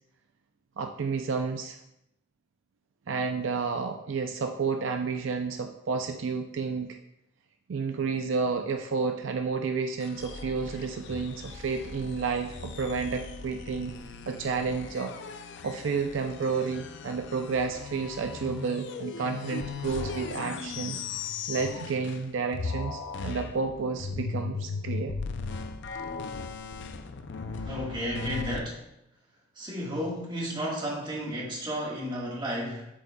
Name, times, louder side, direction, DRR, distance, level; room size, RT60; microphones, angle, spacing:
voice 1, 0.8-1.8 3.1-7.0 7.7-13.9 14.3-15.1 15.6-21.1 21.5-25.1, right 5 dB, 70° right, 5 dB, 0.4 m, -31 dB
sound 1, 10.0-22.3 22.5-28.6, left 4 dB, 60° left, 0.5 m, -38 dB
voice 2, 27.7-28.8 29.6-32.9, equal, 25° right, -3 dB, 1.5 m, -33 dB
7.8 x 7.7 x 2.3 m, 0.83 s
head